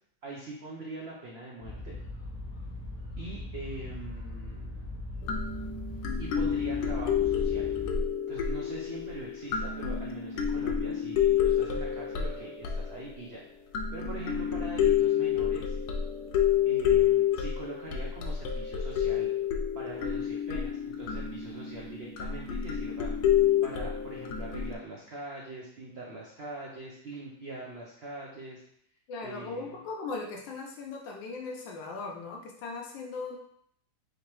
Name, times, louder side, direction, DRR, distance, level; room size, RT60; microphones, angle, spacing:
voice 1, 0.2-2.0 3.2-4.8 6.2-7.7 8.3-13.4 13.9-15.8 16.6-19.3 19.7-23.1 23.6-28.6 29.2-29.8, right 2 dB, 80° right, -3 dB, 0.5 m, -42 dB
sound 1, 1.6-8.0, left 2 dB, 35° left, 0.7 m, -40 dB
sound 2, 5.2-13.3 13.7-24.7, left 9 dB, 70° left, 1.0 m, -29 dB
voice 2, 29.1-33.4, left 3 dB, 90° left, 1 dB, 1.3 m, -38 dB
3.8 x 3.3 x 3.0 m, 0.69 s
omnidirectional pair, 1.9 m